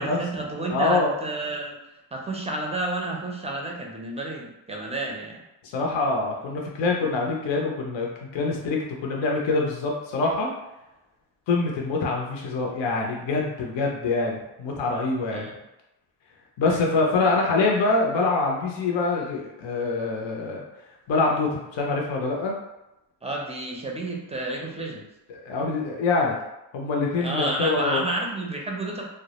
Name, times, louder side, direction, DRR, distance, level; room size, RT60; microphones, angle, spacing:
voice 1, 0.0-1.8 2.1-5.4 15.3-15.5 16.7-16.8 23.2-25.0 27.2-29.0, right 2 dB, 15° right, -1 dB, 0.5 m, -30 dB
voice 2, 0.7-1.1 5.7-10.5 11.5-15.5 16.6-20.6 21.1-22.5 25.4-26.4 26.7-28.0, left 3 dB, 65° left, -1 dB, 0.6 m, -25 dB
2.1 x 2.0 x 2.8 m, 0.92 s
cardioid pair, 70°, 49 cm